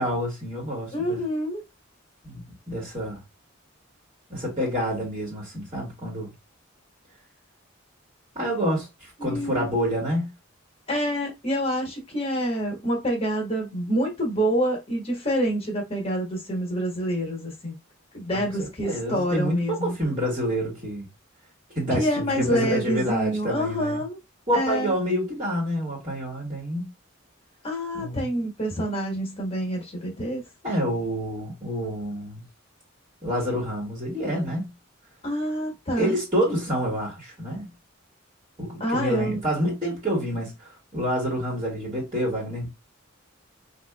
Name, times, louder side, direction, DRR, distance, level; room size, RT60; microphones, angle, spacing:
voice 1, 0.0-1.2 2.2-3.2 4.3-6.3 8.4-10.3 18.3-21.1 21.8-24.0 24.5-26.9 27.9-28.3 30.6-32.4 33.2-34.6 36.0-37.7 38.6-42.7, equal, 25° right, 1.6 m, -28 dB
voice 2, 0.9-1.6 9.2-9.6 10.9-17.7 18.1-19.9 21.9-24.2 24.5-24.9 27.6-30.4 35.2-36.1 38.8-39.4, equal, 30° left, 1.3 m, -27 dB
5.2 x 2.6 x 2.3 m
head